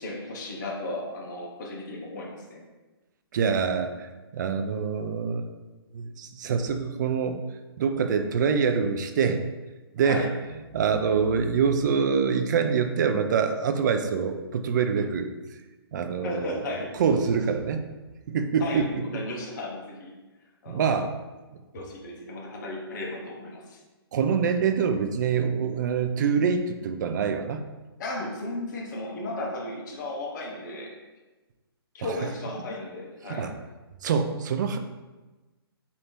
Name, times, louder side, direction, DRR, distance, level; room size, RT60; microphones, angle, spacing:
voice 1, 0.0-2.6 10.0-10.3 16.2-16.9 18.6-18.9 19.1-20.1 20.6-20.9 21.7-23.8 28.0-30.9 31.9-33.5, left 2 dB, 45° left, 0 dB, 0.9 m, -35 dB
voice 2, 3.3-4.1 4.3-5.5 5.9-7.4 7.8-9.4 9.9-10.3 10.7-15.3 15.9-16.6 17.0-17.8 18.3-19.2 20.7-21.1 24.1-27.6 32.0-32.2 33.2-33.5 34.0-34.8, right 6 dB, 45° right, 7 dB, 0.4 m, -25 dB
3.3 x 2.7 x 4.3 m, 1.2 s
hypercardioid pair, 145°, 13 cm